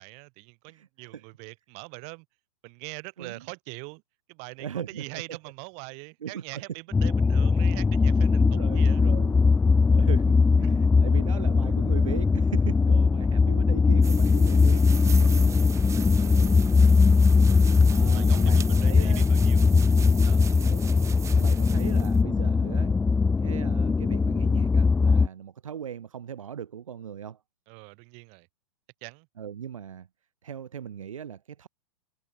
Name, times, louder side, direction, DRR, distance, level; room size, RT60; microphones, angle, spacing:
voice 1, 0.0-2.3 2.6-4.0 4.3-9.0 10.6-10.7 16.2-16.3 18.1-19.7 20.2-20.5 27.7-28.5 29.0-29.3, right 35 dB, 45° right, 3.9 m, -43 dB
voice 2, 0.7-1.2 3.2-3.5 4.6-5.4 6.2-6.6 8.4-9.4 9.9-15.5 15.8-17.0 17.8-19.3 20.6-23.0 23.4-27.4 29.4-30.1 30.4-31.7, right 8 dB, 80° right, 1.9 m, -39 dB
sound 1, 6.9-25.3, left 4 dB, 5° left, 0.3 m, -20 dB
sound 2, 14.0-22.2, right 8 dB, 15° right, 1.2 m, -41 dB
hypercardioid pair, 120°, 17 cm